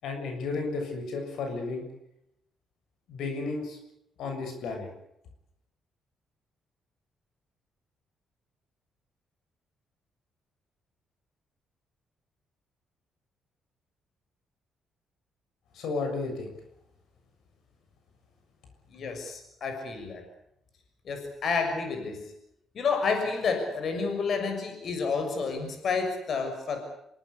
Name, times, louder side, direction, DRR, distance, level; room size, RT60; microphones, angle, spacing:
voice 1, 0.0-1.9 3.1-3.8 4.2-4.9 15.7-16.5, left 3 dB, 80° left, 4 dB, 7.1 m, -33 dB
voice 2, 18.9-20.2 21.0-22.3 22.7-26.8, left 4 dB, 55° left, 5 dB, 6.5 m, -30 dB
26.5 x 18.5 x 8.5 m, 0.79 s
cardioid pair, 90°, 0 cm